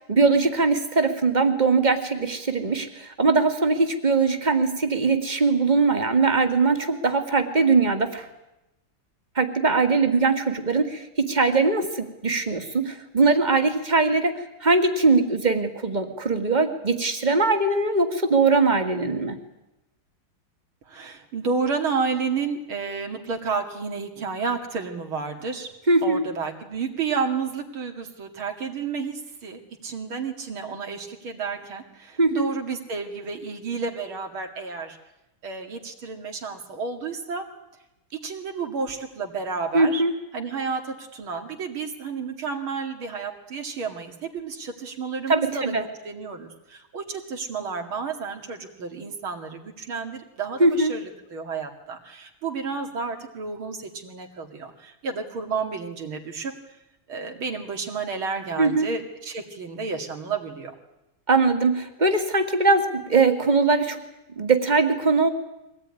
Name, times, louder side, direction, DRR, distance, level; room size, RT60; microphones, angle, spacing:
voice 1, 0.1-8.3 9.4-19.4 25.9-26.2 32.2-32.5 39.7-40.1 45.3-45.8 50.6-50.9 58.6-58.9 61.3-64.0 64.4-65.3, right 3 dB, 20° right, 7 dB, 2.0 m, -21 dB
voice 2, 20.9-25.7 26.0-35.0 35.4-37.5 38.2-40.0 40.3-45.7 46.0-56.5 57.1-60.7, right 5 dB, 75° right, 3 dB, 3.1 m, -31 dB
23.5 x 18.0 x 9.8 m, 0.94 s
omnidirectional pair, 2.3 m